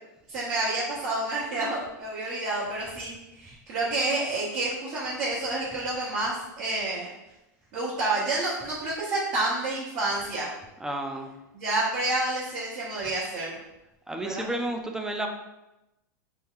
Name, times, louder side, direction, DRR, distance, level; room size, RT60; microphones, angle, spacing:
voice 1, 0.3-7.1 7.7-10.5 11.5-13.6 14.2-14.5, right 2 dB, 55° right, -8 dB, 1.0 m, -29 dB
voice 2, 10.8-11.3 14.1-15.3, right 1 dB, 5° right, 3 dB, 0.4 m, -31 dB
2.9 x 2.3 x 3.6 m, 0.95 s
hypercardioid pair, 105°, 10 cm